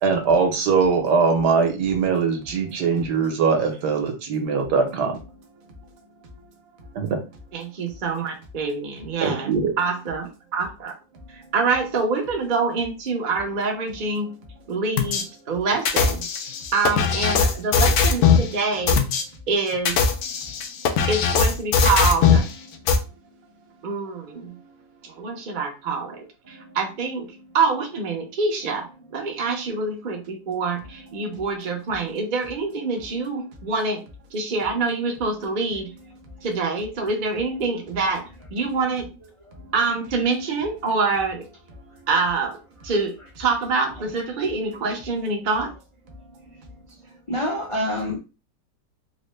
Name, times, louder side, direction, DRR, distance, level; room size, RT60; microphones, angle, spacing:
voice 1, 0.0-5.2 6.9-7.2 9.2-9.7, right 5 dB, 70° right, 4 dB, 1.4 m, -21 dB
voice 2, 7.5-9.5 9.8-10.9 11.5-14.3 14.7-16.2 16.7-19.0 19.5-19.9 21.1-22.4 23.8-24.5 25.2-26.2 26.8-27.3 27.5-28.8 29.1-34.0 34.3-35.9 36.4-38.2 38.5-39.0 39.7-41.4 42.1-42.5 42.8-43.1 43.4-45.7, right 4 dB, 50° right, 2 dB, 0.5 m, -25 dB
sound 1, 15.0-15.2 15.9-18.5 18.9-19.2 19.7-22.5 22.9-23.0, left 6 dB, 70° left, 1.0 m, -19 dB
voice 3, 47.3-48.2, left 1 dB, 45° left, -2 dB, 0.4 m, -26 dB
4.0 x 2.1 x 3.1 m, 0.30 s
omnidirectional pair, 1.9 m